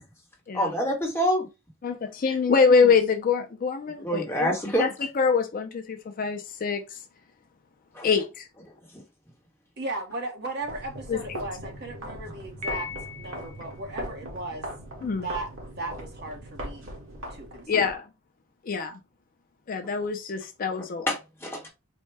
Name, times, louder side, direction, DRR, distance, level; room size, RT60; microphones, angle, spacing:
voice 1, 0.5-1.5 4.0-5.1 7.9-8.1 8.9-9.0 21.1-21.7, equal, 10° left, 1.0 m, -27 dB
voice 2, 1.8-4.5 4.8-4.9 5.2-6.8 8.0-8.5 11.1-11.4 15.0-15.3 17.7-18.1 18.6-19.0 19.7-21.1, left 5 dB, 40° left, 0.4 m, -24 dB
voice 3, 9.8-12.9 13.2-14.7 15.1-15.5 15.8-16.9 17.3-17.7, right 2 dB, 50° right, 1.0 m, -36 dB
sound 1, 10.6-18.0, right 1 dB, 70° right, 1.4 m, -39 dB
Piano, 12.6-13.7, left 7 dB, 35° right, 0.6 m, -37 dB
4.4 x 2.1 x 3.2 m
head